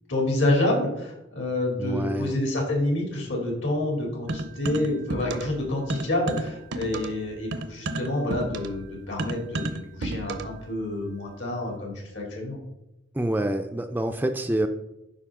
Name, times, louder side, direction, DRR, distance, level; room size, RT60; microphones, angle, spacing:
voice 1, 0.1-12.6, left 1 dB, 70° left, 0 dB, 2.9 m, -28 dB
voice 2, 1.8-2.3 13.1-14.7, right 1 dB, 10° right, 6 dB, 0.4 m, -27 dB
sound 1, 4.3-5.6 5.9-10.6, right 2 dB, 60° right, 0.6 m, -32 dB
11.5 x 4.9 x 3.7 m, 0.88 s
head